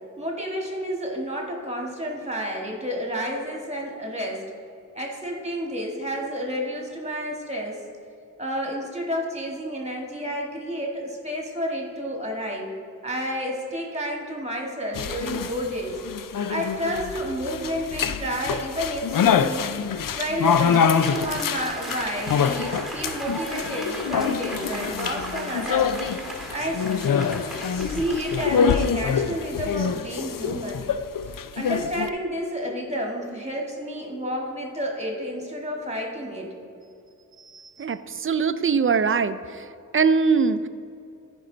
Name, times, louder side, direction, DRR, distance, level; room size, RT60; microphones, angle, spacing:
voice 1, 0.2-4.4 4.9-7.8 8.4-12.7 13.0-16.0 16.5-19.7 20.1-25.9 26.5-26.9 27.9-30.9 31.6-36.5, equal, 20° right, 0 dB, 1.8 m, -30 dB
sound 1, 14.9-32.1, left 7 dB, 85° left, 0.5 m, -25 dB
Applause, 19.9-29.5, right 1 dB, ahead, 1.8 m, -37 dB
voice 2, 37.5-39.4 39.9-40.7, right 5 dB, 40° right, 12 dB, 0.5 m, -22 dB
14.0 x 5.4 x 3.9 m, 2.6 s
wide cardioid pair, 60°, 32 cm